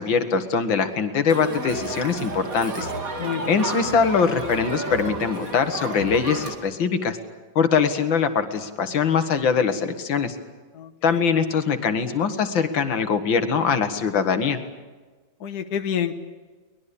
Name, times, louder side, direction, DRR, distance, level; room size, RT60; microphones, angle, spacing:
voice 1, 0.0-2.9 3.5-7.2 7.6-10.4 11.0-14.6, left 6 dB, 85° left, 9 dB, 2.3 m, -22 dB
Crowd, 1.3-6.5, right 2 dB, 45° right, 2.7 m, -32 dB
voice 2, 3.2-3.6 10.7-11.2 15.4-16.2, left 8 dB, 60° left, 7 dB, 1.6 m, -28 dB
23.5 x 20.5 x 8.6 m, 1.3 s
omnidirectional pair, 2.1 m